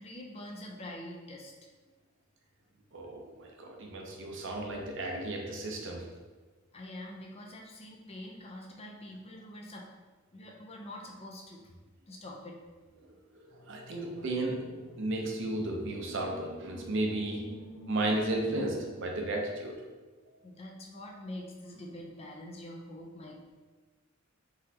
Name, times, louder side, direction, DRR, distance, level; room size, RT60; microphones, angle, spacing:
voice 1, 0.0-1.5 6.7-9.9 10.3-11.7 12.1-12.6 20.4-23.4, left 1 dB, 30° left, 0 dB, 0.5 m, -45 dB
voice 2, 2.9-6.1 13.7-17.5 17.9-19.8, right 2 dB, 60° right, 1 dB, 0.7 m, -34 dB
sound 1, 13.4-19.6, right 1 dB, 85° left, 1.0 m, -51 dB
4.0 x 3.7 x 2.8 m, 1.3 s
head